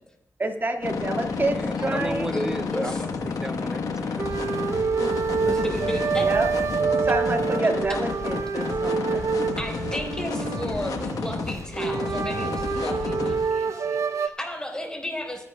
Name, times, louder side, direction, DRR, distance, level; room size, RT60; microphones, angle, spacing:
voice 1, 0.4-2.3 6.2-6.5 7.0-9.4, right 2 dB, 35° right, 3 dB, 1.9 m, -28 dB
sound 1, 0.8-13.5, left 4 dB, 80° left, 1.2 m, -31 dB
voice 2, 1.4-4.4, right 1 dB, 10° right, 10 dB, 0.6 m, -34 dB
voice 3, 2.3-3.0 5.5-6.3 9.6-15.4, left 1 dB, 10° left, 1 dB, 4.3 m, -33 dB
sound 2, 4.2-14.3, right 5 dB, 55° right, 0.6 m, -27 dB
27.5 x 10.5 x 2.3 m, 0.76 s
cardioid pair, 65°, 6 cm